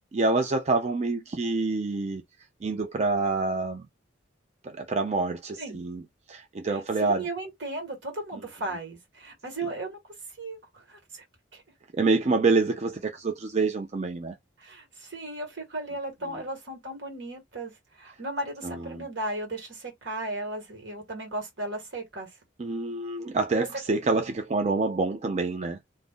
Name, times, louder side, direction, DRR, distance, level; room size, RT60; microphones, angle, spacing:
voice 1, 0.1-2.2 2.6-3.9 4.6-6.0 6.3-7.2 11.9-14.3 18.6-19.0 22.6-25.8, right 3 dB, 35° right, 0.4 m, -27 dB
voice 2, 6.7-10.0 10.4-11.2 11.5-11.6 14.6-22.3, right 2 dB, 65° right, 1.6 m, -36 dB
2.6 x 2.5 x 3.6 m
head